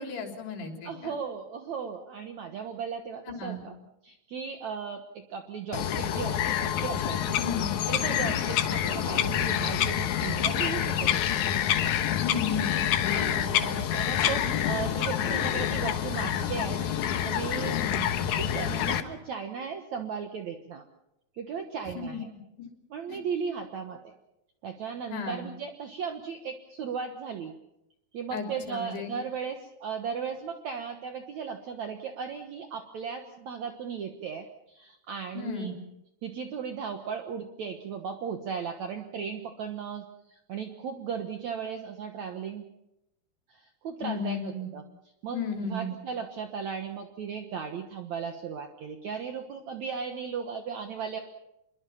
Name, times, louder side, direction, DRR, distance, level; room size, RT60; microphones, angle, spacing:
voice 1, 0.0-1.2 3.3-3.7 7.4-7.7 12.2-12.8 17.7-18.1 22.0-22.2 22.6-22.7 23.1-23.2 25.1-25.4 28.3-29.2 35.3-35.7 44.0-44.7 45.3-45.9, left 4 dB, 85° left, 3 dB, 5.4 m, -34 dB
voice 2, 0.8-3.7 4.0-7.4 7.9-11.4 13.1-16.8 17.2-17.8 18.4-20.8 21.3-22.3 22.9-24.1 24.6-27.5 28.1-35.8 36.2-42.6 43.5-44.8 45.2-45.4 45.7-51.2, right 6 dB, 60° right, 5 dB, 2.1 m, -36 dB
Bird vocalization bird call bird song, 5.7-19.0, left 10 dB, 65° left, 2.1 m, -27 dB
26.0 x 22.5 x 5.7 m, 0.86 s
omnidirectional pair, 4.5 m